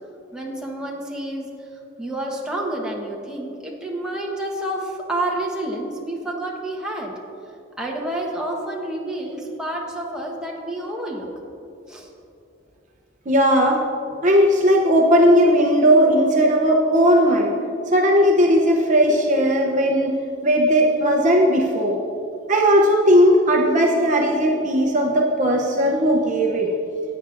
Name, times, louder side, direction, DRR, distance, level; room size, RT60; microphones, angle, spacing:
voice 1, 0.3-1.5 2.0-7.1 7.8-11.3 11.9-12.1, right 1 dB, 5° right, -2 dB, 1.1 m, -29 dB
voice 2, 13.3-13.8 14.1-17.5 17.9-20.2 20.4-22.0 22.5-26.7, equal, 40° right, 1 dB, 0.7 m, -17 dB
15.5 x 9.0 x 2.6 m, 2.6 s
head